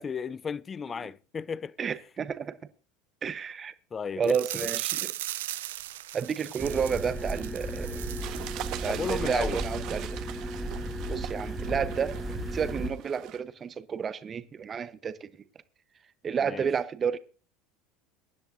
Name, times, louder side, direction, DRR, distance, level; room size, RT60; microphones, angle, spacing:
voice 1, 0.0-1.8 3.9-4.3 4.6-4.7 8.9-9.6 16.4-16.7, left 6 dB, 30° left, 0.5 m, -34 dB
voice 2, 1.8-2.6 3.2-3.7 4.2-5.1 6.1-8.0 8.8-10.2 11.1-12.2 12.5-15.3 16.2-17.2, right 7 dB, 30° right, 1.0 m, -31 dB
sound 1, 4.2-9.3 9.6-9.7 10.1-10.2, right 15 dB, 75° right, 0.5 m, -38 dB
sound 2, 6.6-12.9, right 1 dB, 5° right, 2.1 m, -35 dB
sound 3, 8.2-13.4, right 13 dB, 55° right, 1.4 m, -41 dB
23.0 x 10.5 x 2.7 m
hypercardioid pair, 80°, 0 cm